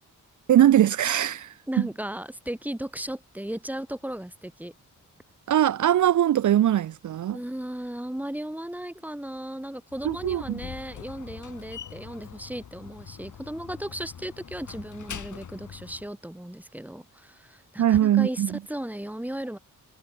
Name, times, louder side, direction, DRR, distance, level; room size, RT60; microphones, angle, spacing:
voice 1, 0.5-1.5 5.5-7.4 10.0-10.6 17.8-18.6, right 11 dB, 65° right, 0.6 m, -21 dB
voice 2, 1.7-4.7 7.3-19.6, right 1 dB, 5° right, 3.2 m, -36 dB
Slam, 9.9-16.1, left 8 dB, 65° left, 3.7 m, -43 dB
wide cardioid pair, 130°, 32 cm